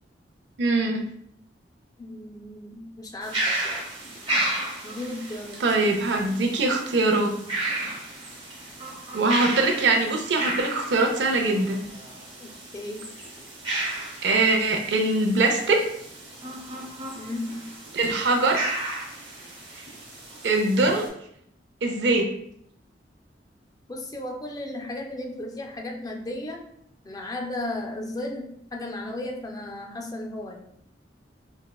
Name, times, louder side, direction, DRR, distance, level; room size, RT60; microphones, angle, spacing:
voice 1, 0.6-1.0 5.6-7.3 9.1-11.9 14.2-15.8 17.9-18.6 20.4-21.1 21.8-22.3, right 2 dB, 70° right, 2 dB, 0.5 m, -22 dB
voice 2, 2.0-3.8 4.8-5.6 12.4-13.1 17.1-17.7 23.9-26.6 27.0-30.6, left 1 dB, 20° left, 2 dB, 0.4 m, -35 dB
sound 1, 3.2-21.1, right 2 dB, 30° right, 0.9 m, -33 dB
4.3 x 2.2 x 2.2 m, 0.69 s
head